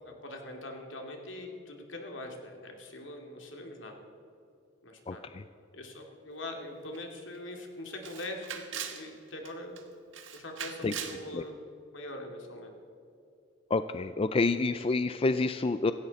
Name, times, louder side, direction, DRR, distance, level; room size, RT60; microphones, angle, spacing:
voice 1, 0.0-4.0 4.8-5.2 5.7-9.8 10.3-11.6 11.9-12.7, left 1 dB, 70° left, 2 dB, 2.5 m, -42 dB
voice 2, 5.1-5.4 10.8-10.9 11.3-11.4 13.7-15.9, left 3 dB, 30° left, 11 dB, 0.4 m, -28 dB
Camera, 6.9-7.0 7.3-7.4 8.0-9.0 9.4-9.8 10.1-11.2, right 8 dB, 75° right, 1.5 m, -40 dB
17.5 x 15.5 x 4.2 m, 2.8 s
head